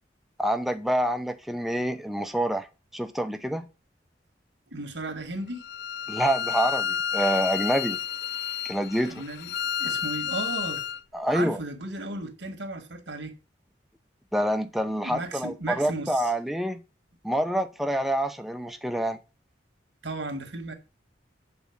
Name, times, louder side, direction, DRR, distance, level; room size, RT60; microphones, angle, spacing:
voice 1, 0.4-2.7 2.9-3.7 6.1-8.0 8.6-9.2 11.1-11.6 14.3-16.8 17.2-19.2, equal, ahead, 0.7 m, -27 dB
voice 2, 4.7-5.7 9.1-9.5 9.8-10.8 11.3-13.3 15.0-16.3 20.0-20.7, right 2 dB, 90° right, 1.7 m, -35 dB
Bowed string instrument, 5.6-11.0, left 8 dB, 65° left, 0.3 m, -30 dB
8.3 x 4.4 x 7.2 m
head